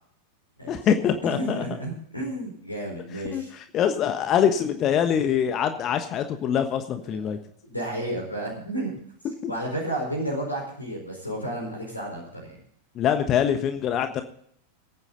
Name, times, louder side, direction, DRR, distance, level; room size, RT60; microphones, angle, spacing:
voice 1, 0.7-1.6 3.3-7.4 9.4-9.5 13.0-14.2, left 8 dB, 30° left, 7 dB, 1.3 m, -24 dB
voice 2, 1.2-3.5 7.1-7.4 7.7-8.9 9.5-12.5, right 1 dB, 85° left, 1 dB, 4.4 m, -32 dB
22.5 x 9.7 x 3.9 m, 0.65 s
figure-of-eight pair, 90°, 0 cm